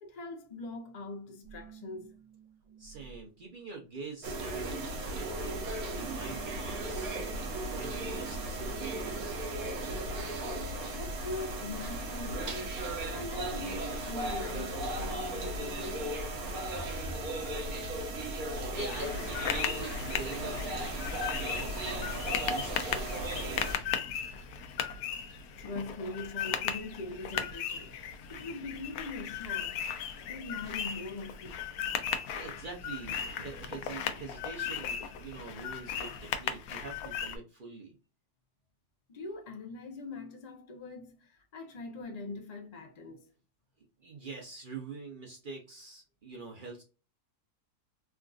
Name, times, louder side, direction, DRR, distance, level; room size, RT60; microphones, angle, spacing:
voice 1, 0.0-2.1 10.4-16.2 25.6-29.8 30.3-31.6 39.1-43.3, left 2 dB, 55° left, 0.4 m, -42 dB
sound 1, 1.4-3.8 4.0-9.2, right 8 dB, 90° right, 1.3 m, -54 dB
voice 2, 2.8-7.2 7.6-9.3 18.7-21.0 21.4-23.9 32.3-38.0 44.0-46.8, right 3 dB, 50° right, 0.6 m, -45 dB
sound 2, 4.2-23.8, right 1 dB, 65° right, 1.2 m, -36 dB
sound 3, 18.9-37.4, left 8 dB, 75° left, 1.0 m, -37 dB
3.5 x 2.4 x 2.3 m
omnidirectional pair, 1.7 m